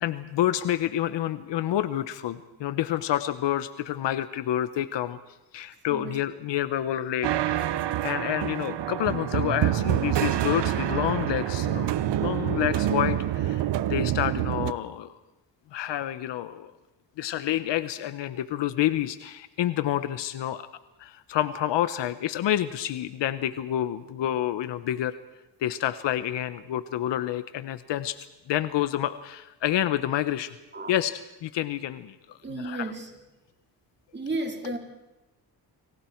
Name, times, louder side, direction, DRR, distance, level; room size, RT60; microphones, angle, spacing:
voice 1, 0.0-5.2 5.5-7.7 8.0-11.9 12.2-15.1 15.7-16.7 17.2-20.7 21.0-25.2 25.6-28.2 28.5-30.5 30.9-32.9 34.6-34.7, left 12 dB, 85° left, 12 dB, 1.1 m, -28 dB
voice 2, 5.9-6.2 30.7-31.0 32.4-33.1 34.1-34.8, right 2 dB, 25° right, 2 dB, 4.6 m, -33 dB
sound 1, 7.2-14.7, right 12 dB, 75° right, 1.1 m, -27 dB
29.5 x 26.0 x 4.6 m, 1.0 s
cardioid pair, 110°, 42 cm